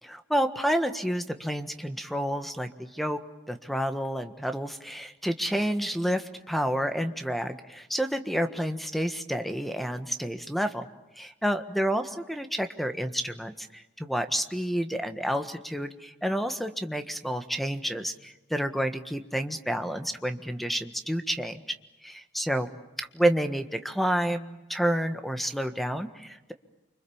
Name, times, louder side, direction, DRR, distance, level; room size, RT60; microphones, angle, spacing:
voice 1, 0.0-3.2 3.5-10.9 11.2-21.6 22.0-22.7 23.0-26.5, equal, ahead, 8 dB, 1.5 m, -29 dB
29.5 x 25.0 x 7.2 m, 1.0 s
head